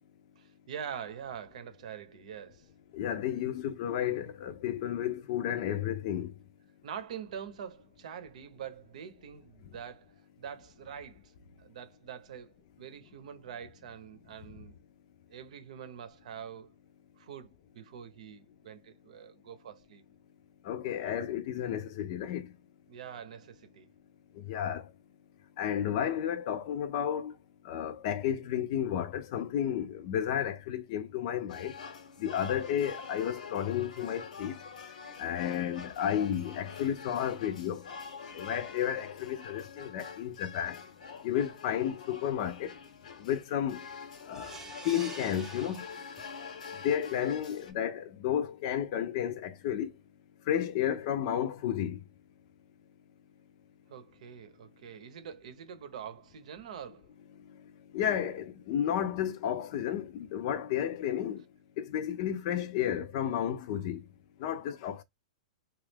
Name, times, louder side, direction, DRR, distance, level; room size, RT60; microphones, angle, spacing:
voice 1, 0.4-2.7 6.8-14.8 15.3-16.7 17.2-20.0 22.9-23.9 53.9-57.1, right 8 dB, 70° right, 0.7 m, -45 dB
voice 2, 2.9-6.3 20.6-22.5 24.3-24.9 25.6-27.3 27.6-31.7 32.2-34.6 35.2-37.9 38.3-40.8 41.2-42.8 43.2-43.8 44.3-44.6 44.8-45.8 46.8-49.9 50.5-52.0 57.9-61.4 61.8-64.0 64.4-65.0, left 10 dB, 50° left, 0.5 m, -32 dB
sound 1, 31.5-47.7, left 5 dB, 80° left, 0.9 m, -46 dB
sound 2, 44.3-46.6 47.0-47.1 47.5-47.6, right 3 dB, 10° right, 0.5 m, -47 dB
2.9 x 2.4 x 3.3 m
hypercardioid pair, 145°, 4 cm